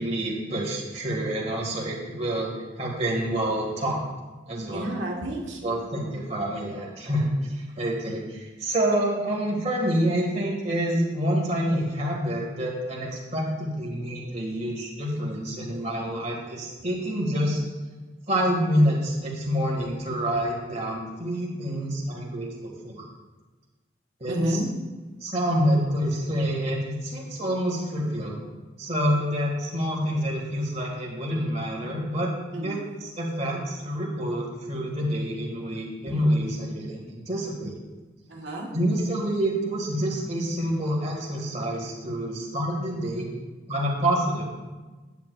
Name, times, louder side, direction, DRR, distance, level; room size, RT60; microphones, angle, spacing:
voice 1, 0.0-2.5 2.8-4.0 4.5-4.9 5.6-17.6 18.3-23.0 24.2-24.6 25.2-28.4 28.8-32.3 32.6-37.8 38.7-43.3 43.7-44.4, equal, 35° right, -3 dB, 2.1 m, -27 dB
voice 2, 4.7-5.8 24.3-24.7 32.5-32.7 36.1-36.2 38.3-38.7, right 1 dB, 70° right, -1 dB, 1.6 m, -30 dB
10.5 x 9.7 x 2.5 m, 1.2 s
head